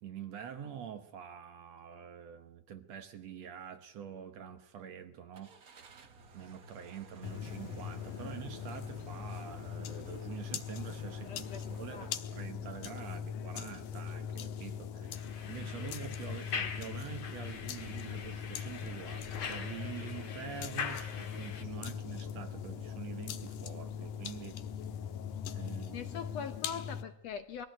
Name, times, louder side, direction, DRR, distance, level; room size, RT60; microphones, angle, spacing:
voice 1, 0.0-5.6 6.3-24.6 25.5-26.1, right 9 dB, 60° right, 9 dB, 2.2 m, -46 dB
Car / Engine starting, 5.3-12.2, right 2 dB, 80° right, 0.7 m, -56 dB
sound 1, 7.2-27.0, left 8 dB, 80° left, 2.7 m, -41 dB
voice 2, 11.2-11.6 11.9-12.2 25.9-27.7, left 7 dB, 65° left, 9 dB, 1.8 m, -42 dB
sound 2, 15.1-21.6, left 6 dB, 45° left, 2.2 m, -42 dB
21.5 x 16.0 x 9.2 m, 0.78 s
omnidirectional pair, 3.7 m